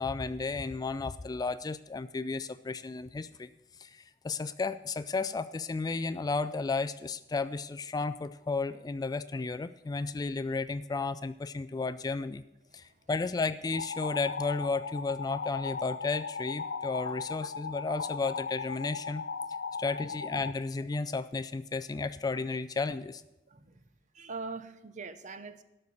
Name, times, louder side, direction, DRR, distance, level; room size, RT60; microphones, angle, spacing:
voice 1, 0.0-3.5 3.8-12.4 12.7-19.2 19.8-23.2, left 4 dB, 20° left, 14 dB, 0.3 m, -33 dB
voice 2, 12.7-13.1 19.6-19.8 23.5-23.8 24.1-25.6, right 4 dB, 45° right, 11 dB, 0.8 m, -43 dB
sound 1, 13.7-20.5, left 5 dB, 75° left, 0.5 m, -37 dB
12.5 x 6.6 x 7.1 m, 0.94 s
head